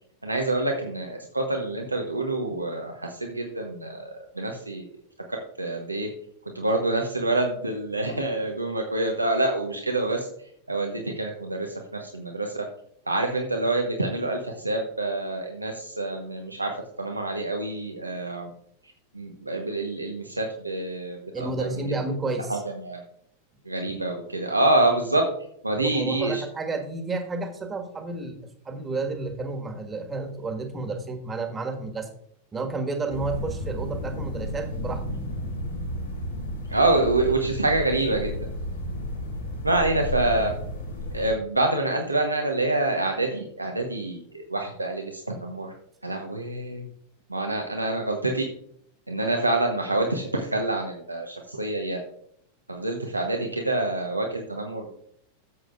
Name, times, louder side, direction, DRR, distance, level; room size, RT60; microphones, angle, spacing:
voice 1, 0.2-4.8 5.6-6.1 6.5-10.3 10.7-12.7 13.1-18.5 19.1-21.8 22.5-23.0 23.6-25.2 25.6-26.4 36.7-38.5 39.6-40.5 41.1-45.7 46.0-46.9 47.3-48.4 49.1-52.0 52.7-54.9, right 2 dB, 85° right, 2 dB, 1.1 m, -26 dB
voice 2, 21.3-22.6 25.7-28.4 28.6-32.1 32.5-35.0, right 3 dB, 15° right, 4 dB, 1.7 m, -31 dB
sound 1, 33.1-41.3, left 1 dB, 70° left, 4.0 m, -33 dB
14.0 x 7.7 x 2.5 m, 0.69 s
figure-of-eight pair, 90°, 0 cm